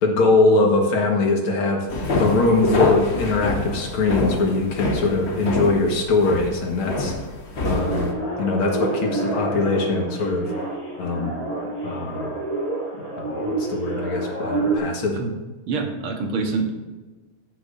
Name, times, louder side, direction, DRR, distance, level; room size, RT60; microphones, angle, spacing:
voice 1, 0.0-1.9 2.2-7.2 7.6-8.1 8.4-10.5 11.0-11.3 11.8-12.3 13.2-15.2, left 3 dB, 80° left, 1 dB, 2.4 m, -22 dB
sound 1, 1.9-8.1, left 2 dB, 40° left, 1.0 m, -26 dB
sound 2, 7.6-14.8, right 2 dB, 15° left, 2.5 m, -28 dB
voice 2, 15.7-16.7, right 4 dB, 90° right, 3 dB, 2.2 m, -25 dB
15.0 x 6.9 x 2.6 m, 1.2 s
omnidirectional pair, 2.3 m